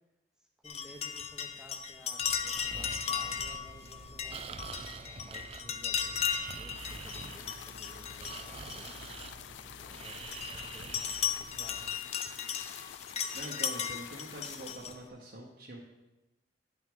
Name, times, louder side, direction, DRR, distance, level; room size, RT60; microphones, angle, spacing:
voice 1, 0.4-4.5 4.7-9.2 9.8-11.1 11.3-12.2, right 1 dB, 5° right, 1 dB, 1.0 m, -55 dB
sound 1, 0.6-9.5 10.0-15.0, left 7 dB, 35° left, 0.5 m, -37 dB
Breathing, 2.2-11.9, right 5 dB, 35° right, 0.3 m, -46 dB
sound 2, 6.7-14.7, left 10 dB, 85° left, 0.3 m, -48 dB
voice 2, 13.1-15.8, right 1 dB, 60° right, -3 dB, 1.0 m, -45 dB
10.0 x 6.0 x 3.8 m, 0.99 s
head